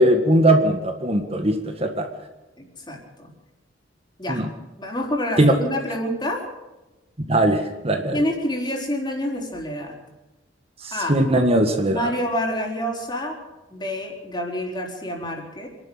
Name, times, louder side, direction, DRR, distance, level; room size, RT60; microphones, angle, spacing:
voice 1, 0.0-2.1 4.3-4.5 5.4-5.5 7.3-8.2 10.8-12.0, right 1 dB, 30° right, 5 dB, 1.8 m, -19 dB
voice 2, 2.6-3.3 4.2-4.4 4.8-6.4 8.1-10.0 10.9-11.2 11.9-13.4 13.7-15.7, equal, 25° left, 2 dB, 4.4 m, -27 dB
27.0 x 11.5 x 8.8 m, 1.1 s
head